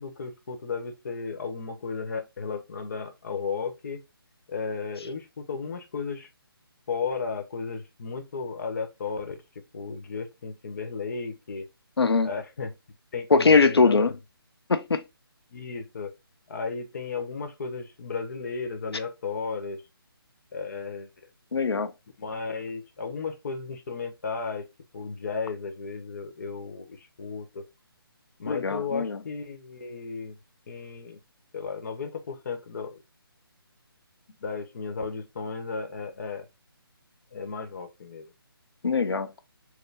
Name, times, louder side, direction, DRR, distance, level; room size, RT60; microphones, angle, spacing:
voice 1, 0.0-4.0 4.5-6.3 6.9-11.7 12.2-12.7 13.1-14.2 15.5-16.1 16.5-19.8 20.5-21.1 22.2-24.7 24.9-27.6 28.4-30.4 30.7-31.2 31.5-33.0 34.4-36.5 37.3-38.3, left 5 dB, 45° left, 0.9 m, -34 dB
voice 2, 12.0-12.3 13.3-14.1 14.7-15.0 21.5-21.9 28.5-29.2 38.8-39.3, left 4 dB, 90° left, 0.6 m, -21 dB
4.6 x 2.1 x 3.3 m
figure-of-eight pair, 160°, 13 cm